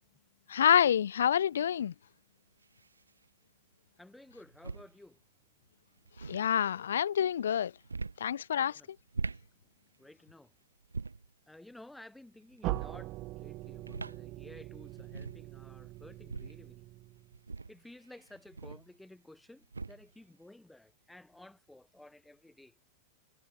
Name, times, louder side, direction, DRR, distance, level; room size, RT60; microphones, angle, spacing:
voice 1, 0.5-1.9 6.2-7.7 8.2-8.8, left 9 dB, 65° left, 0.5 m, -27 dB
sound 1, 1.1-1.2 2.6-3.1 4.3-4.9 6.0-6.5 7.8-8.3 9.0-9.5 10.8-11.3 12.5-13.0 13.7-14.2 14.6-14.7 14.9-15.5 16.1-16.6 17.3-19.0 19.6-20.1, right 4 dB, 80° right, 0.6 m, -42 dB
voice 2, 4.0-5.2 8.5-8.9 10.0-10.5 11.5-13.1 13.4-16.8 17.7-22.7, left 1 dB, 5° left, 3.5 m, -54 dB
sound 2, 12.6-17.4, right 19 dB, 40° right, 2.1 m, -42 dB
figure-of-eight pair, 90°, 0 cm